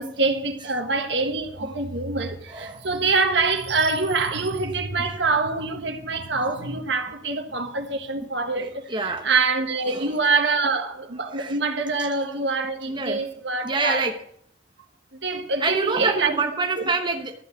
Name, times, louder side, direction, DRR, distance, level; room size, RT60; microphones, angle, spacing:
voice 1, 0.0-14.1 15.2-16.3, right 3 dB, 75° right, 1.5 m, -25 dB
voice 2, 2.5-2.9 8.6-9.3 9.9-10.2 11.3-11.6 12.0-12.1 12.8-14.2 15.6-17.3, right 3 dB, 25° right, 1.1 m, -27 dB
13.0 x 5.8 x 8.0 m
head